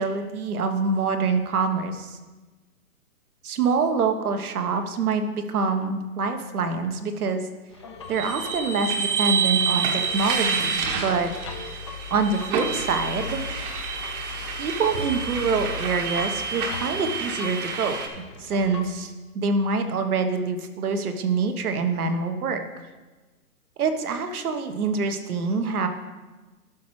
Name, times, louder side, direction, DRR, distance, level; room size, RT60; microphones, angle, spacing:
voice 1, 0.0-2.2 3.4-7.5 8.1-11.3 12.1-13.4 14.6-18.0 18.4-22.6 23.8-25.9, right 4 dB, 70° right, 7 dB, 1.2 m, -25 dB
sound 1, 7.7-18.9, left 5 dB, 20° left, 0.4 m, -39 dB
sound 2, 8.1-18.1, right 6 dB, 35° right, 1.1 m, -28 dB
12.0 x 6.1 x 3.2 m, 1.2 s
hypercardioid pair, 130°, 46 cm